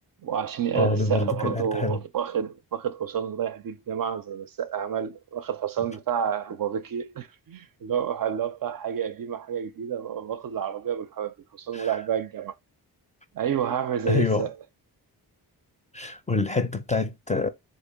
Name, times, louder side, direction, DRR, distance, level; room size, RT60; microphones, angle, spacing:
voice 1, 0.2-12.5 13.3-14.5, right 8 dB, 55° right, 0.5 m, -29 dB
voice 2, 0.7-2.0 11.7-11.9 14.0-14.5 15.9-17.5, left 3 dB, 15° left, 0.5 m, -26 dB
3.6 x 2.1 x 3.4 m
cardioid pair, 55°, 42 cm